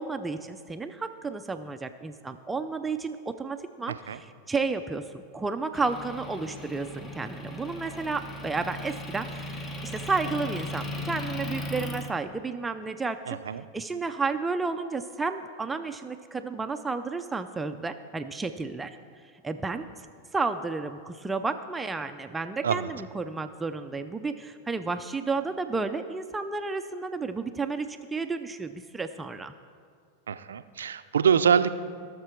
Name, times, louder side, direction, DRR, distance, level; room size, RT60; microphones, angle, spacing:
voice 1, 0.0-19.0 19.4-19.8 20.3-29.5, right 4 dB, 15° right, 8 dB, 0.5 m, -32 dB
voice 2, 3.9-4.2 13.3-13.6 22.6-22.9 30.3-31.8, right 7 dB, 85° right, 11 dB, 0.4 m, -25 dB
Motor vehicle (road) / Engine, 5.7-12.1, left 1 dB, 25° left, 1.2 m, -37 dB
17.0 x 6.7 x 4.6 m, 2.3 s
hypercardioid pair, 105°, 0 cm